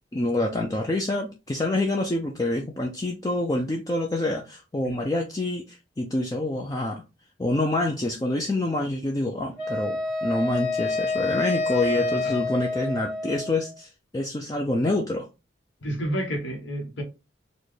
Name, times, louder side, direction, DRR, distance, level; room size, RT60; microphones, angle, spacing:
voice 1, 0.1-7.0 7.4-15.3, left 2 dB, 20° left, 0.4 m, -27 dB
Wind instrument woodwind instrument, 9.6-13.7, left 3 dB, 55° left, 1.6 m, -28 dB
voice 2, 11.7-12.4 15.8-17.0, right 1 dB, 75° left, 1.1 m, -31 dB
4.2 x 2.2 x 3.1 m
head